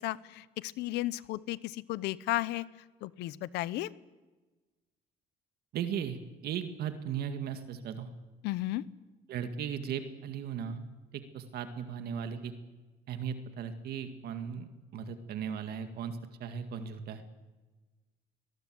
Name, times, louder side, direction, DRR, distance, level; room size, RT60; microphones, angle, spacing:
voice 1, 0.0-2.7 3.0-3.9 8.4-8.8, left 17 dB, 90° left, 18 dB, 0.9 m, -34 dB
voice 2, 5.7-6.2 6.4-8.1 9.3-10.8 11.1-12.5 13.1-17.2, right 8 dB, 70° right, 8 dB, 2.1 m, -37 dB
23.5 x 20.0 x 7.9 m, 1.2 s
cardioid pair, 110°, 17 cm